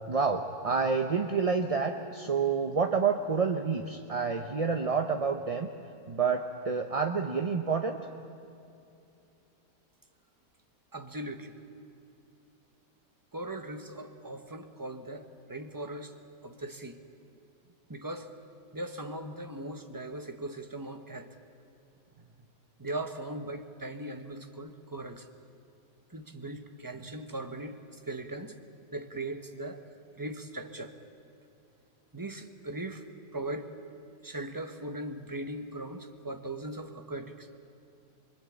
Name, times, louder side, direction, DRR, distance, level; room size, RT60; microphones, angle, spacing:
voice 1, 0.1-5.7 6.1-8.0 27.0-27.1, right 5 dB, 30° right, 5 dB, 0.7 m, -28 dB
voice 2, 10.9-11.5 13.3-16.1 16.4-17.0 17.9-18.3 18.7-21.3 22.8-25.3 26.1-28.6 28.9-29.8 30.2-30.9 32.1-33.0 33.3-33.7 34.2-37.6, right 1 dB, 15° right, 6 dB, 1.3 m, -39 dB
24.5 x 24.5 x 8.7 m, 2.7 s
omnidirectional pair, 1.7 m